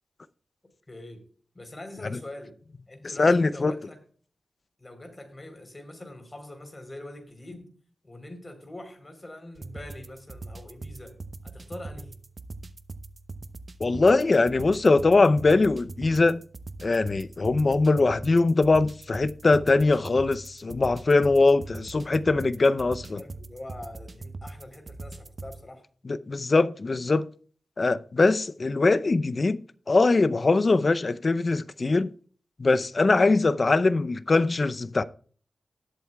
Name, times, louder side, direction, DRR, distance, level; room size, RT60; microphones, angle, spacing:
voice 1, 0.9-1.2 1.5-2.5 2.9-4.0 4.8-7.7 8.0-11.2 11.4-12.1 23.2-25.8, left 1 dB, 30° left, 3.6 m, -43 dB
voice 2, 3.2-3.7 13.8-16.4 16.8-23.2 26.0-27.3 27.8-32.1 32.6-35.0, left 3 dB, 50° left, 0.5 m, -22 dB
sound 1, 9.5-25.6, right 3 dB, 50° right, 0.8 m, -42 dB
18.5 x 8.1 x 2.3 m
cardioid pair, 60°, 0 cm